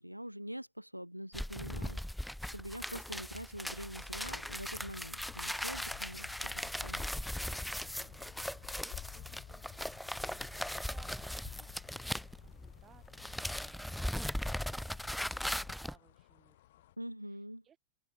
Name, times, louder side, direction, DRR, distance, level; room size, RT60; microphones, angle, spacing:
voice 1, 0.0-6.5 6.8-7.1 17.0-17.6, equal, 90° right, 0.4 m, -44 dB
sound 1, 1.3-12.8 13.0-16.0, left 1 dB, ahead, 0.6 m, -39 dB
sound 2, 4.2-15.7, left 13 dB, 35° left, 4.7 m, -53 dB
sound 3, 6.6-17.0, left 14 dB, 55° left, 3.8 m, -64 dB
voice 2, 7.7-10.0 10.5-16.9 17.3-17.8, right 9 dB, 25° right, 7.6 m, -65 dB
open air
figure-of-eight pair, 90°, 0 cm